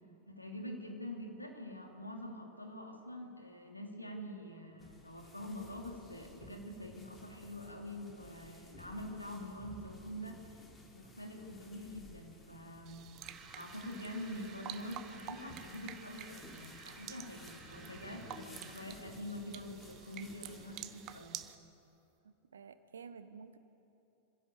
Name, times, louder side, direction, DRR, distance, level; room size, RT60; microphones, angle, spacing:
voice 1, 0.3-10.4 10.9-13.0 13.5-21.4, left 1 dB, 85° left, 1 dB, 2.9 m, -45 dB
sound 1, 4.8-21.2, left 2 dB, 15° left, 3.7 m, -56 dB
sound 2, 12.9-21.6, right 12 dB, 40° right, 0.9 m, -50 dB
sound 3, 13.2-19.0, right 3 dB, 15° right, 4.8 m, -55 dB
voice 2, 22.2-23.6, right 6 dB, 70° right, 12 dB, 1.1 m, -51 dB
26.0 x 16.5 x 6.9 m, 2.8 s
figure-of-eight pair, 90°, 0 cm